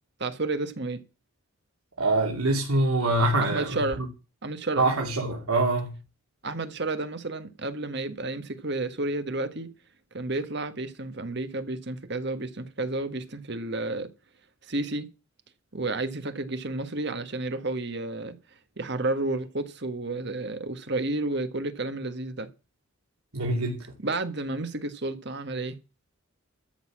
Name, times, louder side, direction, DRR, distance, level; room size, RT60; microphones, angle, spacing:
voice 1, 0.2-1.0 3.4-4.0 4.4-4.8 6.4-9.7 10.1-14.1 14.7-15.1 15.7-18.4 18.8-22.5 24.0-25.8, right 2 dB, 50° right, 1.5 m, -31 dB
voice 2, 2.0-4.1 4.8-5.9 23.3-23.8, right 2 dB, 85° right, 2.9 m, -24 dB
13.5 x 6.8 x 7.4 m
head